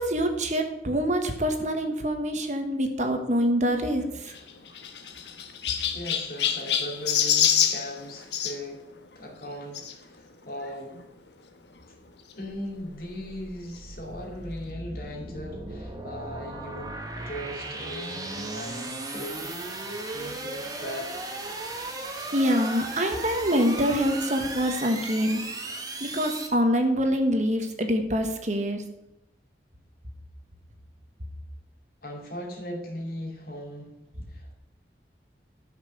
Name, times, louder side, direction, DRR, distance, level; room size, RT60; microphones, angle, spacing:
voice 1, 0.0-4.3 22.3-28.8, equal, 40° right, 5 dB, 1.5 m, -25 dB
Chirp tweet, 4.2-8.6 9.7-9.9 10.6-10.7 10.9-11.0 12.3-12.4, left 9 dB, 75° left, 1.3 m, -26 dB
voice 2, 5.9-8.8 9.1-11.0 12.4-16.9 17.2-19.6 20.1-21.1 32.0-34.0 34.3-34.5, equal, 55° left, 1 dB, 2.8 m, -38 dB
sound 1, 12.5-26.5, right 2 dB, 20° right, 1.5 m, -37 dB
13.0 x 6.0 x 6.9 m, 0.88 s
head